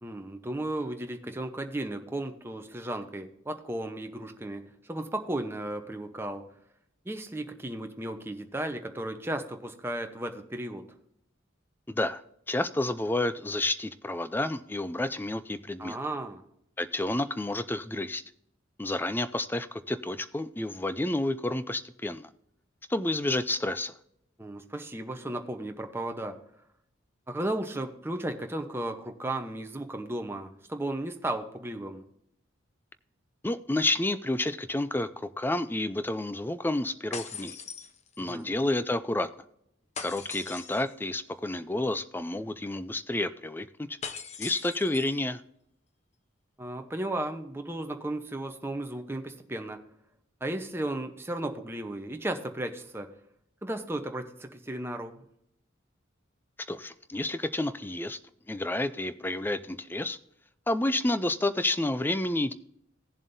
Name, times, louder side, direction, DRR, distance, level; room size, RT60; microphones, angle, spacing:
voice 1, 0.0-6.5 7.0-11.0 15.8-16.4 24.4-26.4 27.3-32.0 38.2-38.5 46.6-49.8 50.4-53.1 53.6-55.2, right 1 dB, 10° right, 5 dB, 0.9 m, -35 dB
voice 2, 11.9-12.2 12.5-16.0 16.8-18.2 18.8-22.3 22.9-23.9 33.4-37.6 38.2-39.3 40.0-44.0 44.4-45.4 56.7-58.2 58.5-60.2 60.7-62.5, left 1 dB, 10° left, 12 dB, 0.4 m, -30 dB
sound 1, 37.1-38.4 39.9-41.0 44.0-45.2, left 6 dB, 35° left, 0.8 m, -40 dB
18.0 x 7.3 x 2.7 m, 0.76 s
head